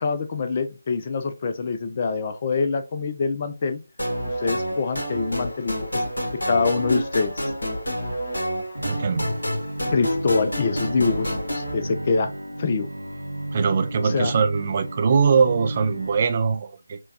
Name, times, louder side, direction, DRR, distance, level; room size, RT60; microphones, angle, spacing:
voice 1, 0.0-3.8 4.4-6.0 6.5-7.5 9.9-12.3 12.6-12.9 14.0-14.3, left 4 dB, 30° left, 0.4 m, -25 dB
sound 1, 4.0-11.7, equal, 70° left, 1.3 m, -28 dB
Bowed string instrument, 8.7-16.2, right 1 dB, 85° right, 0.7 m, -33 dB
voice 2, 8.8-9.3 13.5-17.0, right 5 dB, 30° right, 0.4 m, -22 dB
4.3 x 2.2 x 2.8 m
figure-of-eight pair, 155°, 0 cm